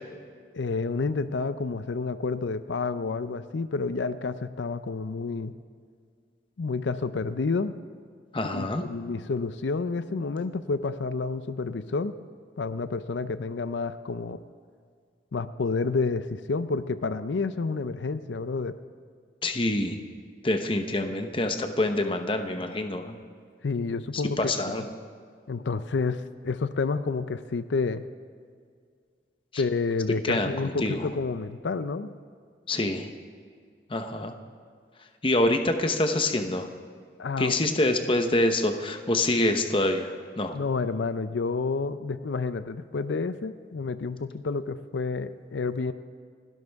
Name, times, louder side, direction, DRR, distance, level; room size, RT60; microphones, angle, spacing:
voice 1, 0.5-5.6 6.6-7.8 8.4-12.1 12.6-14.4 15.3-18.8 23.6-24.8 25.5-28.0 29.6-32.2 37.2-37.8 40.5-45.9, left 4 dB, 90° left, 12 dB, 0.5 m, -29 dB
voice 2, 8.3-8.8 19.4-20.0 20.4-23.2 24.1-24.8 29.5-29.6 30.2-31.1 32.7-33.1 33.9-34.3 35.2-36.7 37.4-40.5, left 1 dB, 30° left, 6 dB, 1.0 m, -26 dB
28.5 x 12.0 x 3.5 m, 2.1 s
head